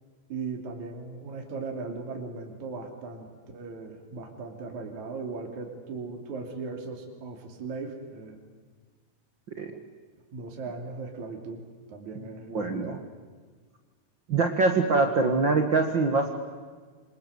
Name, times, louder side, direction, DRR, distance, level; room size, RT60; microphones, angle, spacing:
voice 1, 0.3-3.3 3.5-8.4 10.3-11.6 11.9-12.9, right 4 dB, 45° right, 2 dB, 3.9 m, -38 dB
voice 2, 12.1-13.0 14.3-16.3, right 3 dB, 65° right, 5 dB, 1.1 m, -24 dB
27.5 x 26.5 x 8.1 m, 1.5 s
omnidirectional pair, 5.0 m